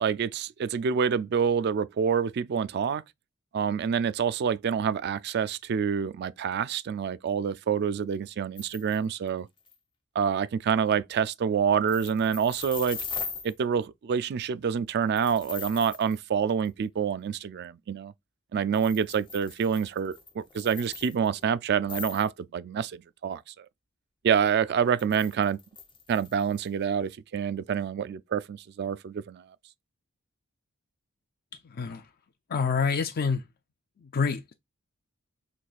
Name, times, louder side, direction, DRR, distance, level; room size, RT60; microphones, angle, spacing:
voice 1, 0.0-3.0 3.5-9.5 10.2-13.0 13.4-18.1 18.5-23.7 24.2-25.6 26.1-29.4, right 7 dB, 50° right, 0.3 m, -27 dB
sound 1, 8.6-9.0 9.3-9.4 9.6-9.8 11.9-13.5 15.2-16.2 16.7-16.8 18.7-21.4 21.8-22.3 25.0-26.7, left 5 dB, 20° left, 0.8 m, -40 dB
voice 2, 31.6-32.1 32.5-33.4 34.0-34.5, left 5 dB, 45° left, 0.4 m, -27 dB
6.3 x 3.2 x 2.4 m
head